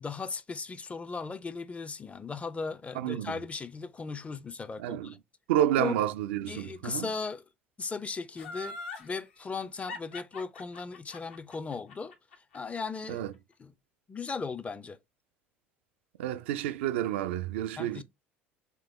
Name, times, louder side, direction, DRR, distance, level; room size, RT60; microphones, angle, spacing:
voice 1, 0.0-5.2 5.8-5.9 6.5-7.4 7.8-12.1 12.5-13.2 13.6-13.7 14.1-15.0 17.8-18.0, left 4 dB, 20° left, 0.5 m, -37 dB
voice 2, 2.9-3.4 4.8-5.1 5.5-7.1 13.1-13.3 16.2-18.0, right 12 dB, 65° right, 0.3 m, -30 dB
Laughter, 8.4-9.1 9.9-13.0 13.3-13.4, left 3 dB, 75° left, 0.9 m, -42 dB
3.6 x 3.4 x 3.2 m
figure-of-eight pair, 65°, 7 cm